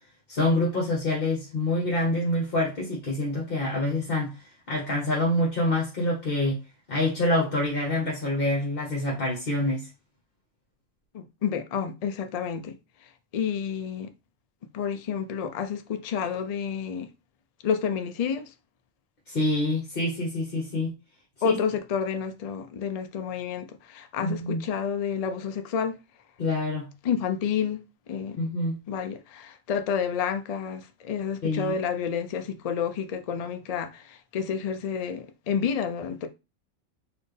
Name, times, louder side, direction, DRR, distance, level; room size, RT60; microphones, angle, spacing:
voice 1, 0.3-4.4 4.7-6.6 6.9-9.9 19.3-20.9 21.4-21.6 24.2-24.6 26.4-26.9 28.4-28.8 31.4-31.7, left 1 dB, 45° left, 1.2 m, -26 dB
voice 2, 11.1-12.8 13.3-14.1 14.7-17.1 17.6-18.5 21.4-26.0 27.0-27.8 28.1-28.4 28.9-36.3, left 7 dB, 75° left, 0.3 m, -29 dB
4.2 x 2.8 x 3.2 m
omnidirectional pair, 1.4 m